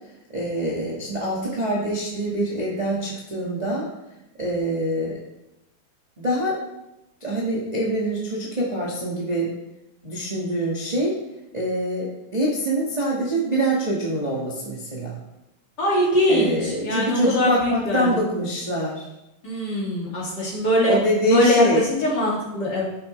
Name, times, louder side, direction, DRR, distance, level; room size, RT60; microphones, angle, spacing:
voice 1, 0.3-3.9 4.4-5.2 6.2-6.6 7.2-9.5 10.0-11.1 11.5-15.2 16.3-19.1 20.9-21.8, right 1 dB, 20° right, -6 dB, 1.1 m, -24 dB
voice 2, 15.8-18.1 19.4-21.0 21.3-22.8, left 1 dB, 35° left, -5 dB, 2.7 m, -22 dB
10.5 x 7.6 x 3.3 m, 0.93 s
omnidirectional pair, 3.3 m